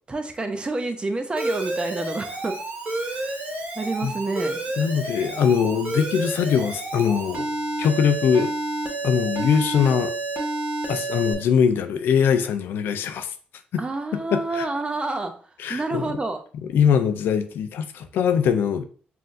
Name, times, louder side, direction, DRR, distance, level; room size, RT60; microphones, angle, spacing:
voice 1, 0.1-2.6 2.9-3.4 3.7-4.6 13.8-15.3 15.7-16.4, right 2 dB, 30° right, 0.7 m, -28 dB
Alarm, 1.4-11.3, right 2 dB, 45° right, 1.5 m, -30 dB
voice 2, 4.8-7.5 7.8-8.5 9.0-10.1 10.9-13.3 13.7-13.8 14.3-14.7 15.6-16.1 16.7-18.8, left 7 dB, 80° left, 0.4 m, -22 dB
5.5 x 2.6 x 2.5 m
cardioid pair, 70°, 3 cm